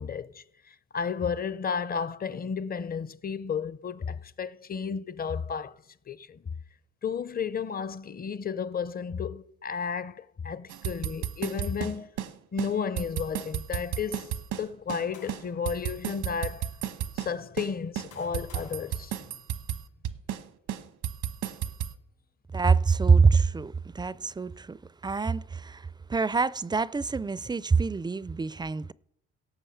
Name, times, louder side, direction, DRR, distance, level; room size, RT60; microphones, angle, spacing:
voice 1, 0.0-5.8 6.1-6.4 7.0-12.1 12.5-16.7 17.1-19.2, left 6 dB, 30° left, 0.6 m, -33 dB
sound 1, 10.7-12.3 12.6-12.7 13.0-15.0 15.3-17.3 17.6-17.7 18.0-20.4 20.7-21.9, right 10 dB, 85° right, 1.1 m, -33 dB
sound 2, 14.6-15.8 16.6-16.7 17.6-19.9, left 6 dB, 75° left, 4.1 m, -55 dB
voice 2, 22.5-28.9, right 4 dB, 15° right, 0.4 m, -25 dB
17.5 x 7.1 x 5.7 m
cardioid pair, 90°, 30 cm